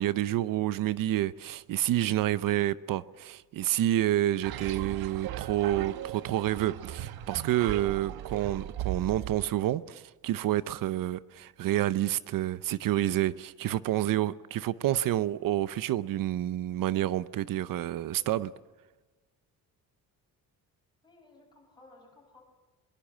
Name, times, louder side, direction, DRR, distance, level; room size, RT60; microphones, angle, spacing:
voice 1, 0.0-18.5, right 13 dB, 65° right, 0.7 m, -29 dB
sound 1, 4.4-9.5, right 11 dB, 90° right, 1.2 m, -38 dB
voice 2, 21.0-22.4, left 2 dB, 10° left, 7.1 m, -57 dB
22.5 x 22.0 x 7.4 m
cardioid pair, 180°, 36 cm